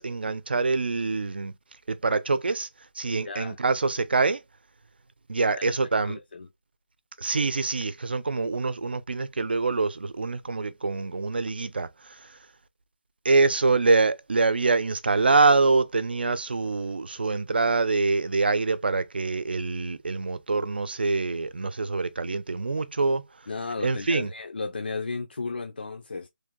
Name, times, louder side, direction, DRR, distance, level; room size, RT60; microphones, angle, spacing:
voice 1, 0.0-1.5 1.9-2.7 3.0-4.4 5.3-6.2 7.2-11.9 13.2-23.2 23.8-24.3, right 3 dB, 85° right, 0.6 m, -25 dB
voice 2, 3.2-3.6 5.5-5.8 6.0-6.5 23.5-26.3, left 4 dB, 90° left, 0.6 m, -34 dB
3.3 x 2.7 x 3.6 m
hypercardioid pair, 180°, 5 cm